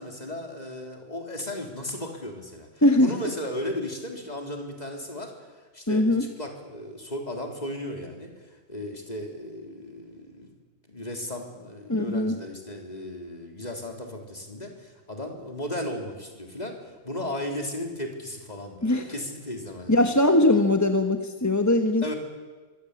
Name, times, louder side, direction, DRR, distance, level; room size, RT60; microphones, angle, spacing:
voice 1, 0.0-10.5 10.9-20.2 22.0-22.1, left 1 dB, 30° left, 2 dB, 4.0 m, -35 dB
voice 2, 5.9-6.3 11.9-12.4 18.8-19.1 19.9-22.1, left 1 dB, 15° left, 5 dB, 1.2 m, -21 dB
25.5 x 24.0 x 8.5 m, 1.3 s
omnidirectional pair, 1.4 m